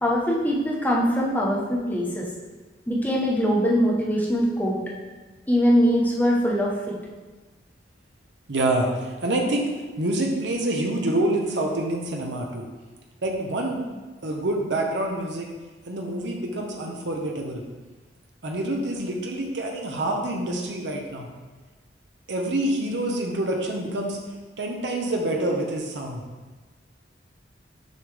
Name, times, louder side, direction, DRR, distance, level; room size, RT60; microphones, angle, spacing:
voice 1, 0.0-2.3 2.9-4.8 5.5-6.9, equal, 10° left, -3 dB, 0.9 m, -22 dB
voice 2, 8.5-9.7 10.0-12.7 13.2-13.8 14.2-15.5 15.9-17.6 18.4-21.3 22.3-24.2 24.6-26.2, right 1 dB, 75° right, 1 dB, 0.8 m, -26 dB
6.6 x 5.2 x 3.3 m, 1.3 s
head